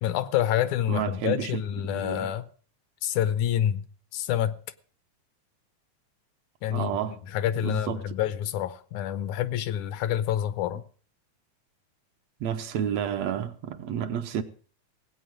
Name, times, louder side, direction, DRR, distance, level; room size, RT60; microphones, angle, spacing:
voice 1, 0.0-2.5 3.0-3.9 4.1-4.6 6.6-10.8, left 11 dB, 80° left, 2.2 m, -27 dB
voice 2, 0.9-2.3 6.7-7.2 7.6-8.0 12.4-14.4, right 9 dB, 70° right, 1.9 m, -31 dB
17.5 x 8.6 x 6.2 m
omnidirectional pair, 3.4 m